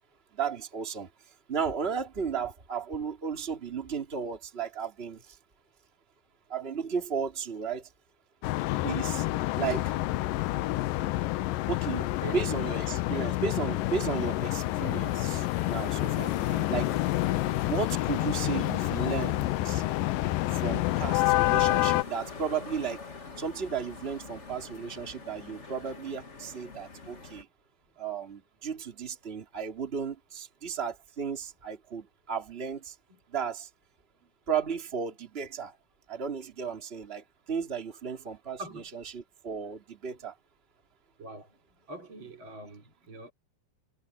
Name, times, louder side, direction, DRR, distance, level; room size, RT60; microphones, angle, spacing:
voice 1, 0.3-1.1 1.5-5.2 6.5-7.8 8.8-9.2 9.6-9.9 11.7-16.3 16.7-16.9 17.7-19.8 20.6-23.0 23.4-27.5 28.0-32.9 33.3-33.7 34.5-35.7 36.1-37.2 37.5-40.3, right 6 dB, 20° right, 2.6 m, -34 dB
sound 1, 8.4-22.0, left 18 dB, 85° left, 2.4 m, -28 dB
sound 2, 13.7-27.4, left 4 dB, 30° left, 1.4 m, -44 dB
voice 2, 16.2-16.8 34.2-34.3 38.6-38.9 41.2-41.6 41.9-43.3, right 3 dB, 35° right, 4.2 m, -43 dB
omnidirectional pair, 3.8 m